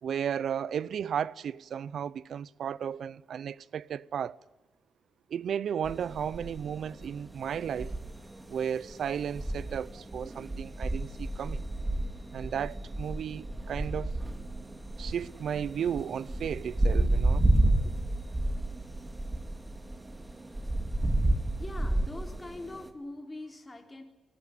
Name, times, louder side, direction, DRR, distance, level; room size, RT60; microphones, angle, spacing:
voice 1, 0.0-4.4 5.3-7.9 8.5-11.6 12.3-14.2 15.0-17.5, right 8 dB, 70° right, 0.7 m, -34 dB
sound 1, 5.8-22.9, right 1 dB, 20° right, 2.6 m, -31 dB
voice 2, 21.6-24.0, left 2 dB, 20° left, 3.8 m, -43 dB
23.0 x 20.0 x 9.1 m
cardioid pair, 85°, 0 cm